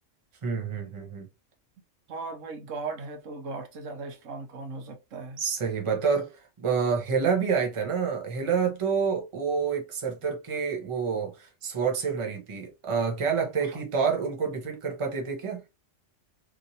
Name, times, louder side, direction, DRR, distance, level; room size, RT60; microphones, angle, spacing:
voice 1, 0.4-1.3 5.4-15.6, right 6 dB, 30° right, 0.7 m, -28 dB
voice 2, 2.1-5.4 13.6-13.8, right 3 dB, 80° right, 1.1 m, -38 dB
3.0 x 2.6 x 2.7 m
omnidirectional pair, 1.3 m